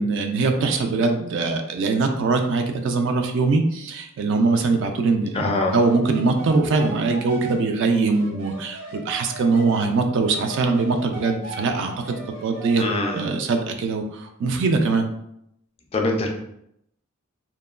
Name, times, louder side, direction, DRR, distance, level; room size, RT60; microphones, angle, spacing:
voice 1, 0.0-12.2 12.4-12.8 13.1-15.1, right 3 dB, 55° right, 5 dB, 0.3 m, -22 dB
voice 2, 5.3-5.7 12.8-13.2 15.9-16.3, left 2 dB, 25° left, 2 dB, 0.3 m, -23 dB
sound 1, 5.3-9.8 10.2-13.4, right 2 dB, 85° right, 0.7 m, -38 dB
3.0 x 2.1 x 2.3 m, 0.77 s
head